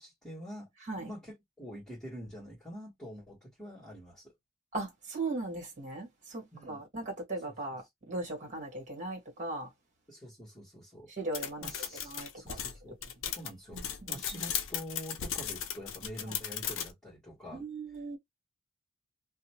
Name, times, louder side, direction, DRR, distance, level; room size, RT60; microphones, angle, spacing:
voice 1, 0.0-0.7 1.0-4.3 6.5-6.9 7.5-7.6 10.1-11.1 11.6-13.0 13.2-13.8 14.1-17.6, equal, 5° left, 1.5 m, -46 dB
voice 2, 4.7-9.7 11.2-11.7 12.0-12.6 13.7-13.8 17.5-18.2, right 2 dB, 35° right, 1.4 m, -38 dB
sound 1, 11.3-16.9, left 9 dB, 60° left, 0.5 m, -36 dB
2.8 x 2.2 x 2.9 m
head